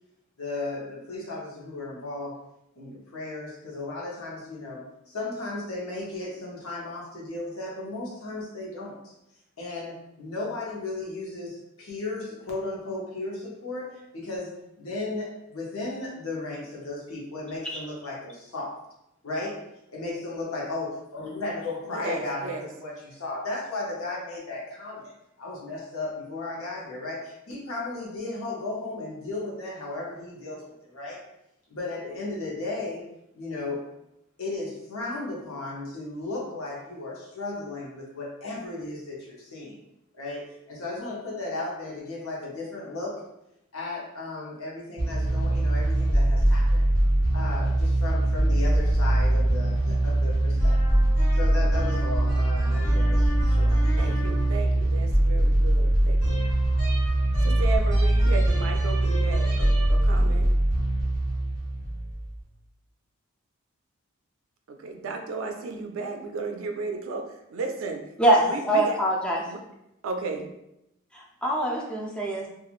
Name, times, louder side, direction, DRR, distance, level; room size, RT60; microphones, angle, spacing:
voice 1, 0.4-2.4 2.8-9.1 9.6-14.5 14.8-18.8 19.2-19.6 19.9-31.2 31.7-33.0 33.3-33.8 34.4-39.8 40.1-43.2 43.7-46.9 47.3-51.0 51.3-53.9, left 2 dB, 80° left, -3 dB, 0.8 m, -35 dB
voice 2, 21.9-22.7 54.0-56.4 57.4-60.5 64.7-67.2 67.5-68.0 68.5-69.0 69.5-69.6 70.0-70.5, right 4 dB, 65° right, 4 dB, 0.4 m, -34 dB
sound 1, 45.0-62.3, right 1 dB, 15° right, 0.8 m, -22 dB
voice 3, 68.2-69.4 71.4-72.5, right 1 dB, 5° left, -2 dB, 0.4 m, -23 dB
3.0 x 2.4 x 2.4 m, 0.85 s
head